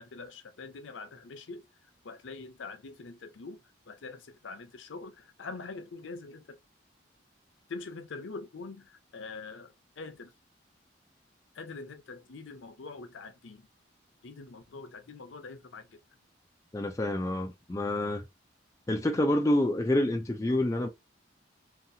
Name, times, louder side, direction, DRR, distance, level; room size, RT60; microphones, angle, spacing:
voice 1, 0.0-1.6 2.0-3.6 3.9-6.6 7.7-10.3 11.5-13.7 14.2-16.0 19.1-19.3, left 3 dB, 85° left, 0.6 m, -44 dB
voice 2, 16.7-18.2 18.9-20.9, left 1 dB, 15° left, 0.3 m, -27 dB
2.9 x 2.4 x 2.6 m
head